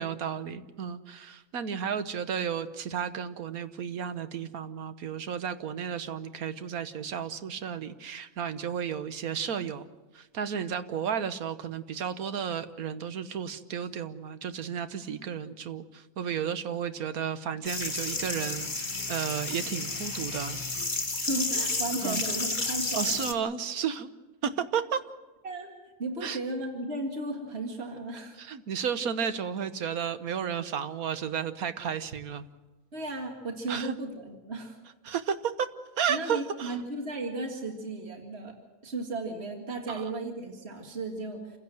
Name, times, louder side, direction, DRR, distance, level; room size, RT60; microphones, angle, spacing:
voice 1, 0.0-9.8 10.1-20.6 22.0-22.2 22.9-24.1 24.4-25.0 26.2-26.4 28.4-32.5 33.7-33.9 35.0-35.7 36.0-36.8 39.9-40.0, right 7 dB, 90° right, 11 dB, 1.5 m, -33 dB
sound 1, 17.7-23.3, left 3 dB, 35° left, 2.1 m, -32 dB
voice 2, 21.3-23.4 25.4-25.7 26.0-28.4 32.9-34.8 36.1-38.5 38.8-41.6, right 2 dB, 45° right, 3 dB, 2.3 m, -35 dB
27.5 x 16.0 x 7.8 m, 1.2 s
omnidirectional pair, 1.5 m